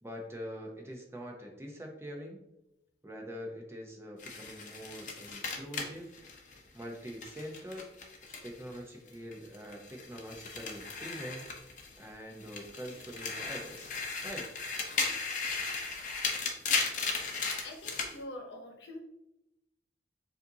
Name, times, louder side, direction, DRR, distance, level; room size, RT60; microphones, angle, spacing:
voice 1, 0.0-2.4 3.0-6.1 6.7-7.9 8.4-11.5 12.0-13.9 14.2-14.5, equal, 15° right, 0 dB, 0.7 m, -44 dB
sound 1, 4.2-8.8 9.1-12.0 12.4-18.1, left 4 dB, 45° left, 0.7 m, -36 dB
voice 2, 17.6-19.0, left 1 dB, 80° left, 2 dB, 0.9 m, -44 dB
7.1 x 2.7 x 2.7 m, 0.86 s
head